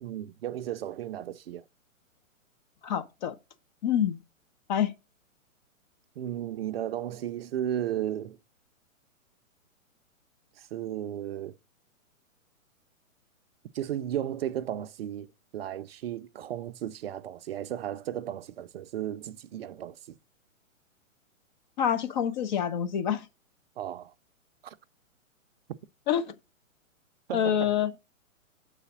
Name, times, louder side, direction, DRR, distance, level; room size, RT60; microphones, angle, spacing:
voice 1, 0.0-1.7 6.2-8.4 10.6-11.6 13.7-15.3 15.5-20.0 23.8-24.1 24.6-24.8 27.3-27.7, right 11 dB, 45° right, 0.5 m, -34 dB
voice 2, 2.8-3.4 3.8-4.2 4.7-4.9 21.8-23.3 26.1-26.2 27.3-27.9, left 9 dB, 35° left, 0.7 m, -26 dB
6.9 x 4.1 x 5.9 m
hypercardioid pair, 135°, 41 cm